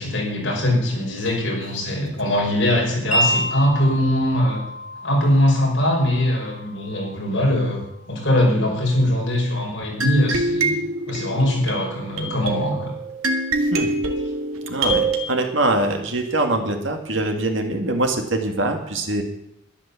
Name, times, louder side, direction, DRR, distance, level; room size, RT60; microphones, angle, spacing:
voice 1, 0.0-4.6 5.0-10.8 11.1-12.9, left 1 dB, 55° left, -2 dB, 5.8 m, -21 dB
Wind chime, 3.1-9.2, equal, 30° left, 3.4 m, -30 dB
sound 1, 10.0-15.3, right 2 dB, 85° right, 1.9 m, -24 dB
voice 2, 13.6-13.9 14.7-19.2, right 2 dB, 60° right, 4 dB, 2.1 m, -23 dB
12.0 x 11.0 x 7.2 m, 0.81 s
head